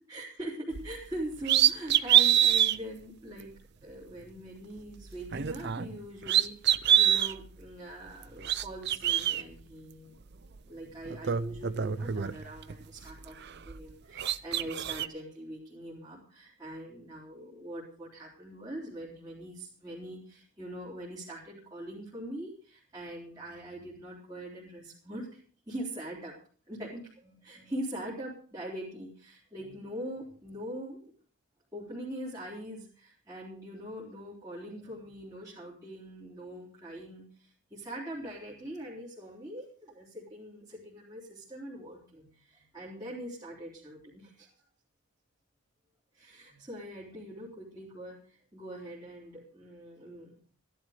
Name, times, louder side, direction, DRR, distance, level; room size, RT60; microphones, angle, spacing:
voice 1, 0.1-3.5 3.8-10.2 10.6-25.4 25.7-26.4 26.7-31.0 31.7-44.5 46.1-50.4, right 1 dB, 15° right, -7 dB, 3.5 m, -42 dB
sound 1, 0.7-0.9 1.4-2.8 3.4-3.5 5.2-6.0 6.2-7.3 8.2-9.4 10.5-10.6 11.0-12.7 13.1-13.9 14.2-15.1, right 10 dB, 50° right, 0.6 m, -25 dB
15.0 x 11.5 x 5.0 m, 0.43 s
head